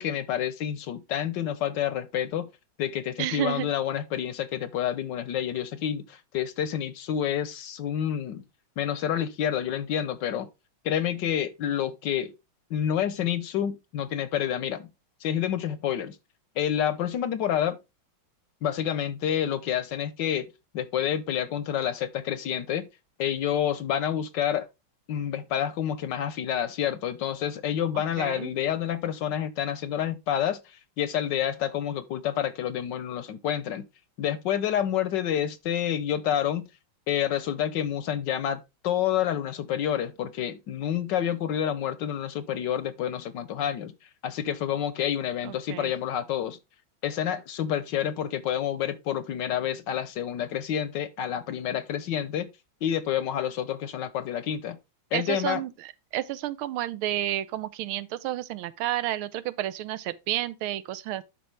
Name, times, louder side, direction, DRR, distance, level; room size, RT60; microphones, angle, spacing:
voice 1, 0.0-2.5 2.8-8.4 8.8-10.5 10.8-12.3 12.7-14.9 15.2-16.2 16.6-17.8 18.6-20.5 20.7-22.9 23.2-24.7 25.1-33.8 34.2-36.7 37.1-43.9 44.2-46.6 47.0-52.5 52.8-54.8 55.1-55.6, left 10 dB, 70° left, 1.2 m, -28 dB
voice 2, 3.2-3.7 27.9-28.5 45.4-45.9 55.1-61.2, right 13 dB, 85° right, 1.6 m, -31 dB
11.5 x 4.4 x 3.2 m
omnidirectional pair, 2.3 m